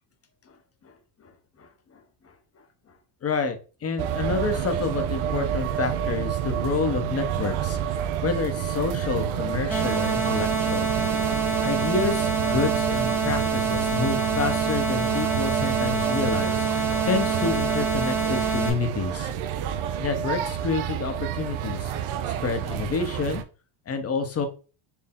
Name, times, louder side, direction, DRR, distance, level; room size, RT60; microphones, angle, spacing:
voice 1, 3.2-10.9 11.6-19.3 20.0-21.9 22.4-23.4 23.9-24.5, left 4 dB, 30° left, 7 dB, 0.8 m, -29 dB
sound 1, 4.0-23.4, right 9 dB, 80° right, 0.7 m, -29 dB
sound 2, 9.7-18.7, right 5 dB, 5° right, 0.8 m, -26 dB
4.5 x 2.7 x 3.6 m, 0.34 s
cardioid pair, 115°, 49 cm